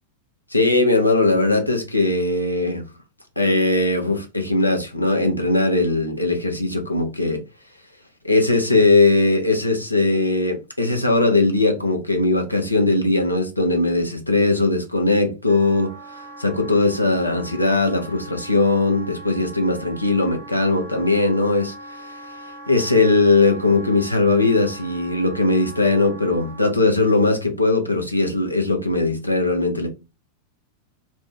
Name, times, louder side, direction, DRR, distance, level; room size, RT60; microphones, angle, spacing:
voice 1, 0.5-2.8 3.4-7.4 8.2-22.1 22.7-29.9, left 2 dB, 85° left, 0.6 m, -19 dB
Wind instrument woodwind instrument, 15.5-26.8, right 1 dB, 70° right, 0.8 m, -40 dB
2.6 x 2.1 x 3.4 m
figure-of-eight pair, 90°, 0 cm